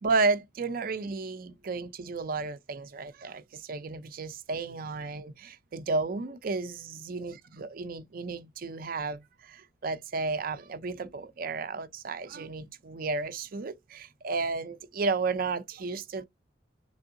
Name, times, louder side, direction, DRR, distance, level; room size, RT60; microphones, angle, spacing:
voice 1, 0.0-16.2, right 3 dB, 50° right, 0.5 m, -32 dB
3.6 x 3.4 x 2.6 m
head